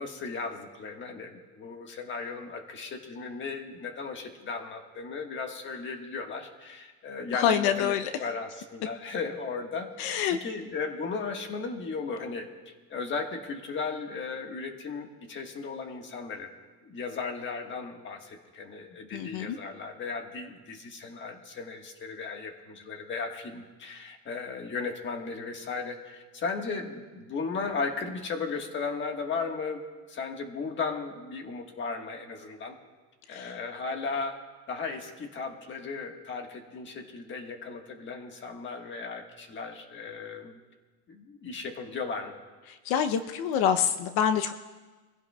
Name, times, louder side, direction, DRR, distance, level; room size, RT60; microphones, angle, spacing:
voice 1, 0.0-12.5 12.9-16.5 16.8-29.8 30.1-32.7 33.3-34.4 34.7-40.6 41.1-42.4, left 4 dB, 30° left, 3 dB, 1.5 m, -36 dB
voice 2, 7.3-8.1 10.0-10.4 19.1-19.6 33.3-33.5 42.8-44.5, left 8 dB, 80° left, 9 dB, 0.8 m, -26 dB
25.0 x 16.0 x 2.3 m, 1.3 s
cardioid pair, 160°, 37 cm